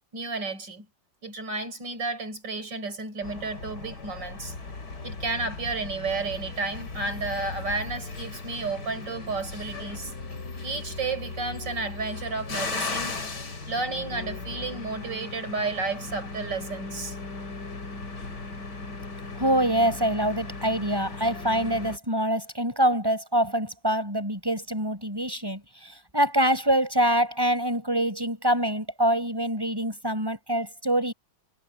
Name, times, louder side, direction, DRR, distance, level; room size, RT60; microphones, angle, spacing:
voice 1, 0.1-0.9 1.2-4.5 5.0-10.1 10.6-13.2 13.7-17.2, right 3 dB, 75° right, 5.6 m, -32 dB
sound 1, 3.2-22.0, left 3 dB, 65° left, 3.8 m, -37 dB
voice 2, 19.4-31.1, right 1 dB, 10° right, 8.0 m, -25 dB
omnidirectional pair, 1.9 m